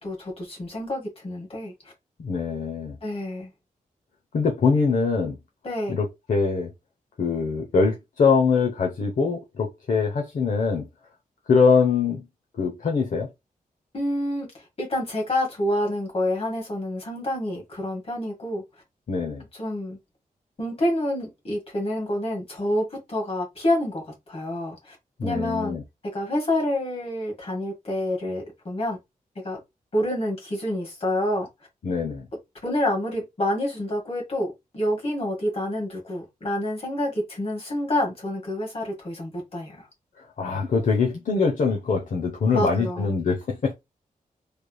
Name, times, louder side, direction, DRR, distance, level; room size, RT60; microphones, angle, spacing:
voice 1, 0.0-1.7 3.0-3.5 5.6-6.0 13.9-14.5 14.8-18.6 19.5-20.0 20.6-25.0 25.2-25.8 26.1-29.0 29.4-29.6 29.9-31.5 32.6-39.8 42.5-43.1, left 1 dB, 40° left, 1.8 m, -28 dB
voice 2, 2.2-2.9 4.3-5.4 5.9-6.7 7.2-10.9 11.5-12.2 12.6-13.3 19.1-19.4 25.2-25.8 31.8-32.2 40.2-43.7, left 5 dB, 60° left, 0.8 m, -23 dB
3.4 x 3.3 x 2.2 m
wide cardioid pair, 145°, 15 cm